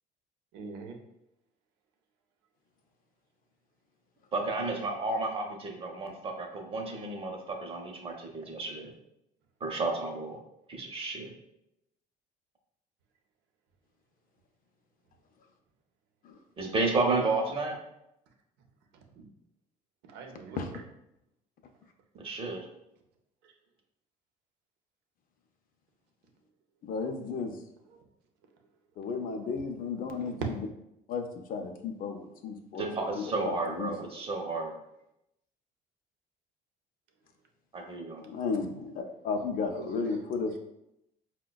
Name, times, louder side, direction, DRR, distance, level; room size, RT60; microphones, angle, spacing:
voice 1, 0.5-1.0 19.2-19.3 20.1-20.8 27.9-28.0 39.7-40.2 40.5-40.6, right 4 dB, 85° right, 3 dB, 0.6 m, -45 dB
voice 2, 4.3-8.9 9.6-10.4 10.7-11.3 16.6-17.8 22.2-22.6 32.8-34.7 37.7-38.2, right 3 dB, 35° right, 2 dB, 0.7 m, -32 dB
voice 3, 26.8-27.5 29.0-30.7 31.1-33.9 38.2-40.6, left 4 dB, 55° left, 5 dB, 0.5 m, -34 dB
4.8 x 2.1 x 2.2 m, 0.84 s
cardioid pair, 110°, 17 cm